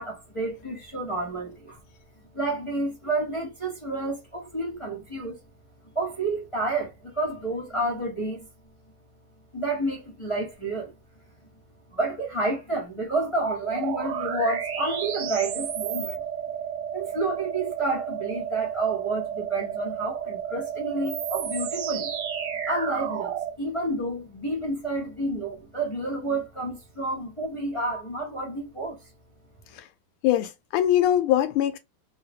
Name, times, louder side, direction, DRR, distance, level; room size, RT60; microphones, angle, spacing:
voice 1, 0.0-1.8 2.3-5.4 5.9-8.5 9.5-10.9 11.9-16.2 16.9-22.1 22.7-29.1, right 2 dB, 35° left, 0.4 m, -30 dB
sound 1, 13.6-23.6, right 8 dB, 80° right, 1.5 m, -32 dB
voice 2, 30.2-31.8, left 11 dB, 90° left, 1.5 m, -22 dB
3.6 x 2.1 x 2.6 m
omnidirectional pair, 2.3 m